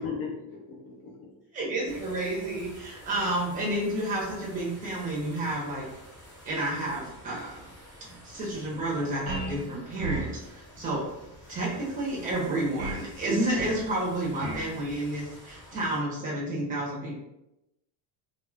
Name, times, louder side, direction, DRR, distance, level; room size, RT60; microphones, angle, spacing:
voice 1, 0.0-1.3, left 5 dB, 35° left, -4 dB, 0.4 m, -37 dB
voice 2, 1.5-5.9 6.4-7.7 8.0-11.1 11.5-17.2, right 1 dB, 20° right, -4 dB, 0.7 m, -30 dB
sound 1, 1.9-16.0, equal, 10° left, 0.9 m, -50 dB
sound 2, 9.3-9.6 10.0-10.4 12.8-13.1 13.6-13.9 14.4-14.7, right 3 dB, 55° right, 0.6 m, -34 dB
2.3 x 2.1 x 3.3 m, 0.88 s
cardioid pair, 165°, 46 cm